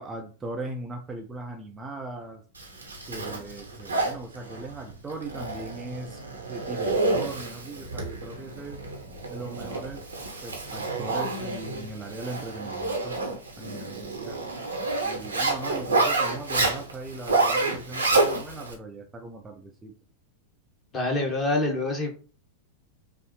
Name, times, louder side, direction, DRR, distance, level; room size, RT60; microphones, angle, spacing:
voice 1, 0.0-2.4 3.1-6.2 6.5-8.8 9.3-10.1 10.4-13.2 13.6-14.4 15.0-19.9, right 2 dB, 15° right, 1 dB, 0.6 m, -39 dB
Zipper (clothing), 2.6-18.7, right 3 dB, 80° right, 0.9 m, -29 dB
voice 2, 20.9-22.1, left 2 dB, 20° left, 1 dB, 1.3 m, -26 dB
5.3 x 2.0 x 3.0 m, 0.38 s
figure-of-eight pair, 90°, 0 cm